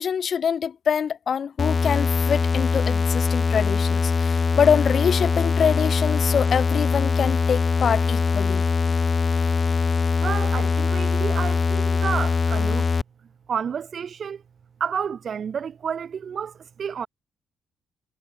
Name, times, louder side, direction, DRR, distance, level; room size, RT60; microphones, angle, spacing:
voice 1, 0.0-8.6, left 7 dB, 50° left, 0.6 m, -24 dB
sound 1, 1.6-13.0, left 5 dB, 35° left, 1.1 m, -22 dB
voice 2, 10.2-12.8 13.5-14.4 14.8-17.1, right 7 dB, 50° right, 1.4 m, -30 dB
cardioid pair, 90°, 0 cm